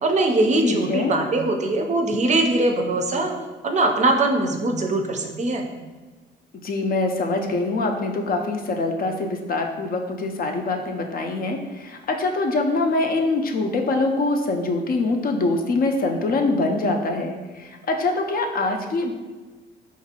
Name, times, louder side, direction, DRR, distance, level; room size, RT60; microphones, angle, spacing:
voice 1, 0.0-3.3 3.6-5.6, right 2 dB, 35° right, 3 dB, 0.4 m, -21 dB
voice 2, 0.6-1.2 6.6-19.1, left 2 dB, 50° left, 3 dB, 0.4 m, -24 dB
3.8 x 2.5 x 2.8 m, 1.3 s
cardioid pair, 90°, 20 cm